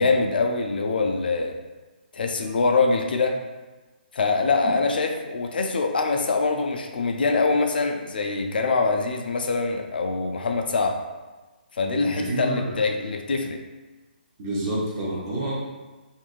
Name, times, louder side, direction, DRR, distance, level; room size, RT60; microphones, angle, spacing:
voice 1, 0.0-1.6 2.1-3.4 4.1-11.0 11.7-13.6, left 3 dB, 60° left, 4 dB, 0.3 m, -24 dB
voice 2, 12.0-12.6 14.4-15.5, right 1 dB, 20° right, -6 dB, 0.5 m, -28 dB
3.0 x 2.5 x 2.4 m, 1.2 s
hypercardioid pair, 170°, 6 cm